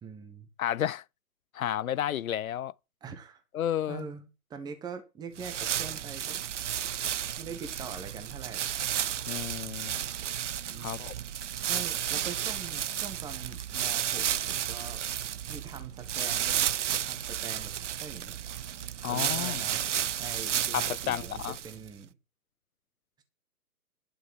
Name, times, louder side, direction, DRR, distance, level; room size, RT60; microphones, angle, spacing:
voice 1, 0.0-0.5 3.0-3.4 3.9-6.5 7.4-8.7 10.7-11.0 11.7-15.1 15.5-16.7 17.0-19.8 20.2-22.1 23.2-23.3, right 6 dB, 10° right, 1.3 m, -43 dB
voice 2, 0.6-1.0 1.5-2.7 3.5-4.0 9.3-10.0 10.8-11.1 19.0-19.6 20.7-21.6, left 11 dB, 65° left, 0.5 m, -31 dB
sound 1, 5.4-21.9, right 10 dB, 50° right, 0.6 m, -32 dB
11.0 x 6.5 x 6.2 m
figure-of-eight pair, 135°, 46 cm